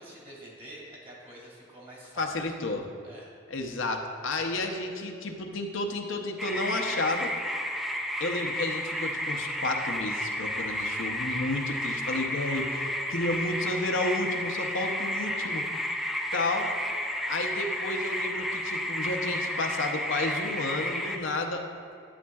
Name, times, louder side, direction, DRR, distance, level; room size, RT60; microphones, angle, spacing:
voice 1, 0.0-2.3 3.0-3.3, right 1 dB, 30° right, -4 dB, 2.0 m, -47 dB
voice 2, 2.2-2.9 3.5-7.3 8.2-15.6 16.3-16.7 17.3-21.6, left 2 dB, 75° left, 3 dB, 0.7 m, -31 dB
sound 1, 6.4-21.2, left 1 dB, ahead, 0.3 m, -32 dB
11.0 x 9.1 x 2.3 m, 2.5 s
head